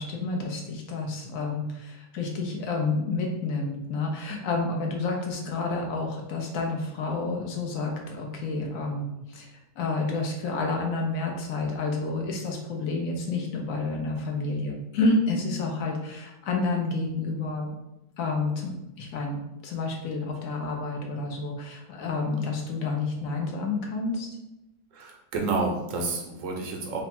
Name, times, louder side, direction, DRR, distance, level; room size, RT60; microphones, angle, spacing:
voice 1, 0.0-17.7 18.2-24.3, left 3 dB, 65° left, 1 dB, 0.9 m, -29 dB
voice 2, 24.9-27.0, right 3 dB, 65° right, 1 dB, 0.9 m, -29 dB
3.2 x 2.1 x 4.2 m, 0.90 s
omnidirectional pair, 1.7 m